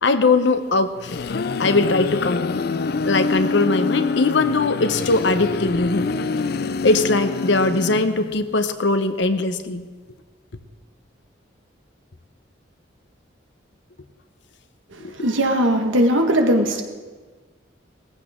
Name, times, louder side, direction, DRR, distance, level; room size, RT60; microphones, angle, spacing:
voice 1, 0.0-1.2 1.6-2.5 3.0-6.1 6.8-9.9 15.0-15.1, left 3 dB, 70° left, 10 dB, 0.8 m, -20 dB
zombie choir, 0.7-8.5, left 4 dB, 55° left, 0.4 m, -26 dB
voice 2, 14.9-16.8, equal, 90° right, 4 dB, 1.6 m, -19 dB
19.0 x 14.5 x 3.7 m, 1.4 s
head